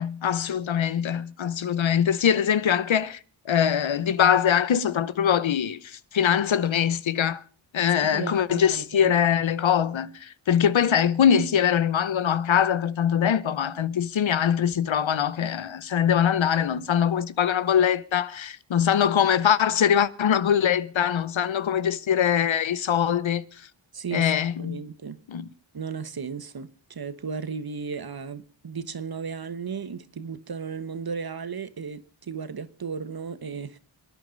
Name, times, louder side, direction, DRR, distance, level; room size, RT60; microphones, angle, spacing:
voice 1, 0.0-3.2 3.5-7.4 7.7-23.4 24.1-24.8 25.3-25.5, left 8 dB, 70° left, 0.9 m, -23 dB
voice 2, 8.0-9.1 23.9-24.3 24.6-25.2 25.7-33.8, right 5 dB, 50° right, 1.2 m, -35 dB
27.0 x 9.7 x 5.2 m
wide cardioid pair, 70°, 48 cm